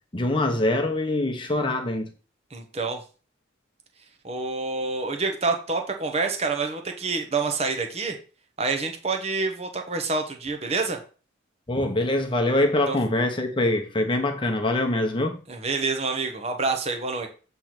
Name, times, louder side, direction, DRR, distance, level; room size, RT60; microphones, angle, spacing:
voice 1, 0.1-2.1 11.7-15.4, left 1 dB, 25° left, 1.0 m, -24 dB
voice 2, 2.5-3.0 4.2-8.1 8.6-11.0 12.9-13.0 15.5-17.3, right 3 dB, 30° right, 1.0 m, -27 dB
7.7 x 3.4 x 5.9 m
head